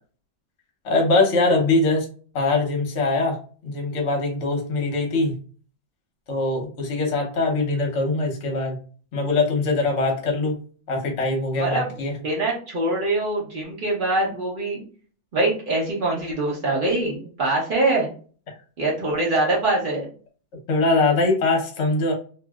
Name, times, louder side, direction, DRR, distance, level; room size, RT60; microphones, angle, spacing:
voice 1, 0.8-2.1 2.3-3.4 3.6-5.3 6.3-8.8 9.1-10.6 10.9-12.1 20.7-22.1, left 3 dB, 55° left, 0 dB, 0.9 m, -22 dB
voice 2, 11.6-11.9 12.2-14.8 15.3-18.1 18.8-20.1, right 2 dB, 65° right, -4 dB, 0.5 m, -23 dB
3.0 x 2.6 x 2.3 m, 0.41 s
omnidirectional pair, 2.2 m